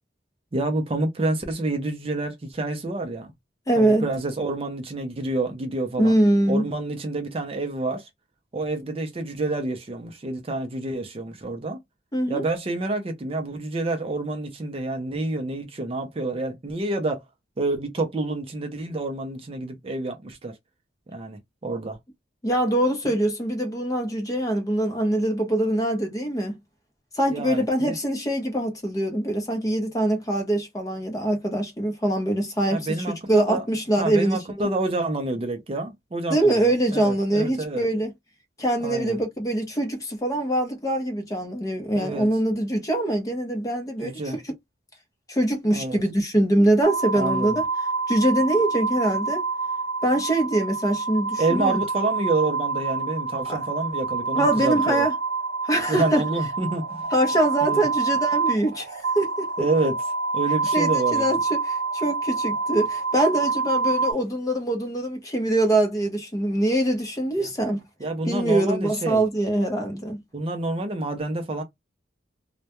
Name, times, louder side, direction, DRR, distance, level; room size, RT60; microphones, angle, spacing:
voice 1, 0.5-3.3 3.8-6.1 6.5-8.1 8.5-11.8 12.3-17.2 17.6-20.5 21.1-22.0 27.3-27.9 32.7-33.6 34.0-37.9 38.8-39.2 41.9-42.3 44.0-44.4 45.7-46.0 47.1-47.6 51.4-55.1 55.9-57.1 57.6-57.9 59.6-60.0 60.3-61.4 67.4-67.5 68.0-69.2 70.3-71.6, right 2 dB, 30° right, 0.4 m, -28 dB
voice 2, 3.7-4.1 6.0-6.6 12.1-12.4 22.4-26.5 27.1-34.7 36.3-38.1 38.6-44.2 45.3-47.7 48.1-49.5 50.0-51.8 53.5-53.6 54.4-55.1 55.6-56.2 57.1-58.9 59.2-59.7 60.7-67.8 68.3-70.2, right 1 dB, 20° left, 0.6 m, -23 dB
sound 1, 46.8-64.1, right 4 dB, 75° right, 0.7 m, -27 dB
2.2 x 2.1 x 2.8 m
head